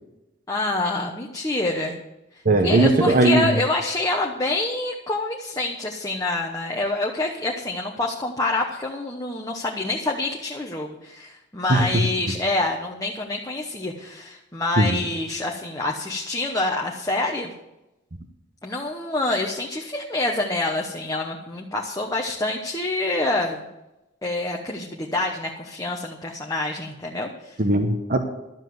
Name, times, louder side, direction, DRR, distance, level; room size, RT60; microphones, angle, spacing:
voice 1, 0.5-2.0 2.6-17.5 18.6-23.6 24.2-27.6, left 2 dB, 20° left, 0 dB, 1.0 m, -26 dB
voice 2, 2.4-3.5 11.7-11.9 14.8-15.0 27.6-28.2, right 2 dB, 45° right, 4 dB, 1.0 m, -18 dB
12.0 x 7.3 x 7.9 m, 0.94 s
head